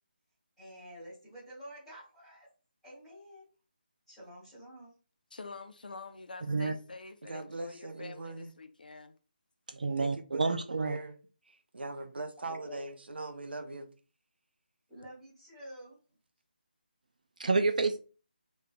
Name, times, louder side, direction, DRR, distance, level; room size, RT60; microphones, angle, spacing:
voice 1, 0.6-2.5 2.8-3.5 4.1-4.9 12.4-12.8 14.9-16.0, equal, ahead, 1.8 m, -49 dB
voice 2, 5.3-9.1, left 3 dB, 60° left, 0.6 m, -47 dB
voice 3, 7.2-8.5 9.7-11.2 11.5-13.9, right 3 dB, 90° right, 0.7 m, -41 dB
voice 4, 9.8-11.0 17.4-18.0, right 3 dB, 50° right, 0.4 m, -29 dB
5.0 x 3.2 x 2.2 m
hypercardioid pair, 180°, 5 cm